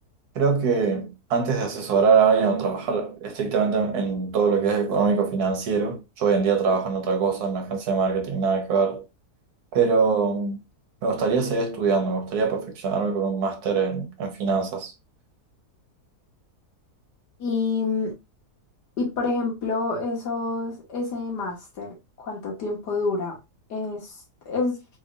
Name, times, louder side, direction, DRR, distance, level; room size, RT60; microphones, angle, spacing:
voice 1, 0.3-9.0 9.7-10.6 11.0-14.9, right 5 dB, 70° right, 1.5 m, -23 dB
voice 2, 17.4-18.1 19.0-23.4 23.7-24.2 24.5-24.8, left 3 dB, 85° left, 2.0 m, -28 dB
4.0 x 3.2 x 2.4 m
omnidirectional pair, 1.7 m